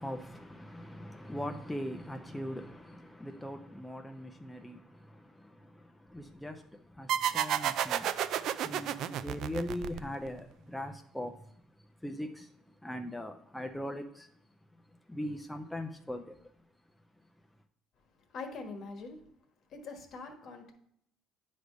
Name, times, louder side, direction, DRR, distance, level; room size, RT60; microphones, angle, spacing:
voice 1, 0.0-14.3 14.9-16.5, left 1 dB, 5° left, 0.5 m, -41 dB
sound 1, 7.1-10.4, right 10 dB, 65° right, 0.3 m, -31 dB
voice 2, 18.3-19.2 19.7-20.7, left 4 dB, 55° left, 1.3 m, -43 dB
9.3 x 3.4 x 5.1 m
cardioid pair, 110°, 0 cm